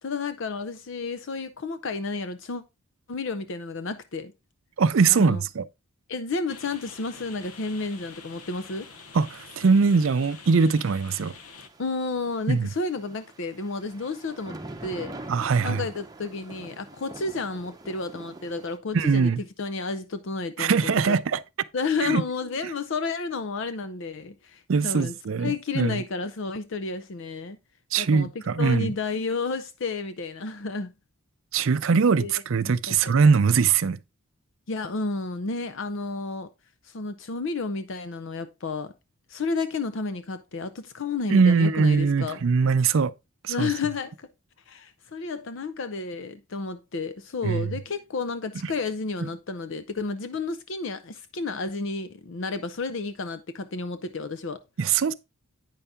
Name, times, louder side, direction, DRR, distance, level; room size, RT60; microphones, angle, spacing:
voice 1, 0.0-2.6 3.1-4.3 5.1-5.4 6.1-8.9 11.8-15.2 15.6-19.3 19.6-21.2 21.7-25.1 25.4-27.6 28.0-30.9 32.2-33.2 34.7-36.5 36.8-38.9 39.3-42.4 43.5-44.3 44.7-54.6, left 4 dB, 60° left, 0.5 m, -31 dB
voice 2, 4.8-5.6 9.1-11.3 12.5-12.7 15.3-15.8 18.9-19.4 20.6-21.4 22.0-22.2 24.7-26.0 27.9-28.9 31.5-34.0 41.3-43.1 43.4-43.7 47.4-47.7 49.2-49.3 54.8-55.1, right 5 dB, 60° right, 0.5 m, -22 dB
sound 1, 6.5-11.7, left 5 dB, 85° left, 1.0 m, -47 dB
sound 2, 6.5-18.8, right 2 dB, 15° right, 0.7 m, -46 dB
9.1 x 5.6 x 3.6 m
head